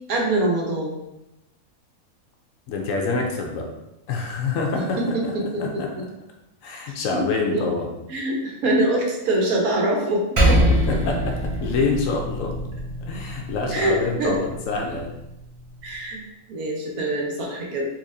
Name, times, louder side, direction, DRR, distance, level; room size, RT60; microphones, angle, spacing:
voice 1, 0.1-1.0 5.0-6.0 7.1-7.3 7.5-7.7 8.1-10.6 13.7-14.4 15.8-16.2 16.5-17.9, right 1 dB, 75° right, -1 dB, 1.3 m, -24 dB
voice 2, 2.7-3.7 4.1-5.3 5.6-5.9 6.6-7.9 10.9-12.6 13.1-15.1, left 4 dB, 70° left, 1 dB, 0.9 m, -26 dB
Percussion, 10.4-15.1, equal, 50° right, 0.3 m, -24 dB
4.0 x 2.8 x 2.6 m, 0.90 s
omnidirectional pair, 1.5 m